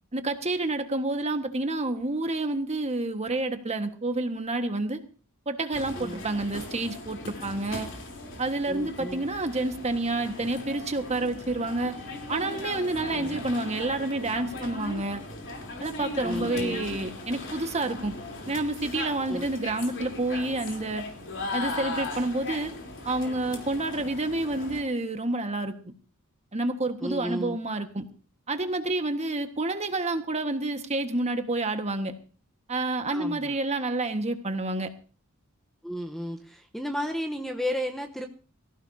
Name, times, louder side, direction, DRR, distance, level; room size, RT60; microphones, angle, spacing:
voice 1, 0.1-5.0 5.5-7.9 8.4-12.0 12.3-15.2 15.8-18.1 18.5-21.0 21.5-22.7 23.0-25.7 26.5-28.0 28.5-32.1 32.7-34.9, right 2 dB, 30° right, 7 dB, 1.5 m, -29 dB
sound 1, 5.7-24.8, left 2 dB, 55° left, 3.5 m, -38 dB
voice 2, 5.9-6.3 8.7-9.2 13.1-13.4 16.2-16.9 19.3-19.5 27.0-27.6 33.1-33.6 35.8-38.3, equal, ahead, 4 dB, 0.9 m, -33 dB
23.5 x 15.0 x 2.8 m, 0.37 s
head